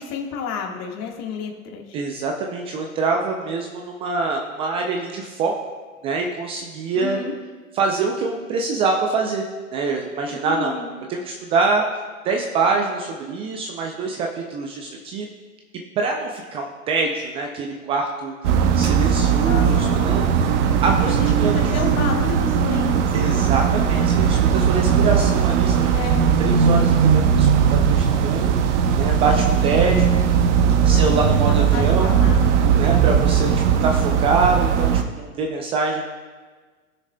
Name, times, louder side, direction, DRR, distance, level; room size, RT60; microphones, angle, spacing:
voice 1, 0.0-2.0 6.9-7.4 10.4-10.9 19.4-20.2 21.0-23.6 24.8-25.2 25.9-26.3 29.2-29.5 30.9-32.5, left 6 dB, 35° left, 1 dB, 1.6 m, -31 dB
voice 2, 1.9-5.5 6.0-7.2 7.7-9.4 9.7-10.7 11.1-11.8 12.2-15.3 16.0-18.3 18.7-20.3 20.8-21.6 23.1-25.9 26.4-30.1 30.8-32.1 32.8-36.1, right 4 dB, 15° right, 1 dB, 0.3 m, -24 dB
sound 1, 18.4-35.0, right 7 dB, 55° right, 1.0 m, -18 dB
18.5 x 6.5 x 2.2 m, 1.4 s
hypercardioid pair, 105°, 43 cm